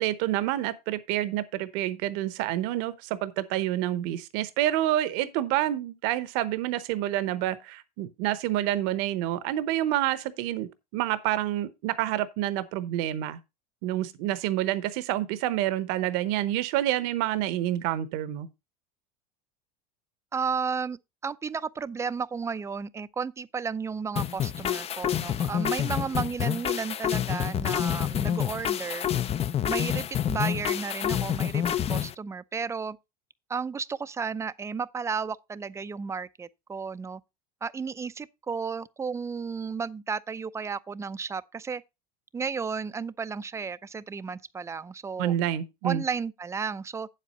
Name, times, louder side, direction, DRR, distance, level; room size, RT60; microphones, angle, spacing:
voice 1, 0.0-13.4 13.8-18.5 45.2-46.0, right 13 dB, 65° right, 0.9 m, -28 dB
voice 2, 20.3-29.1 29.7-33.0 33.5-37.2 37.6-41.8 42.3-45.4 45.8-47.1, right 5 dB, 15° right, 0.5 m, -33 dB
sound 1, 24.2-32.1, left 10 dB, 30° left, 0.6 m, -28 dB
9.0 x 7.6 x 4.1 m
supercardioid pair, 100°, 20 cm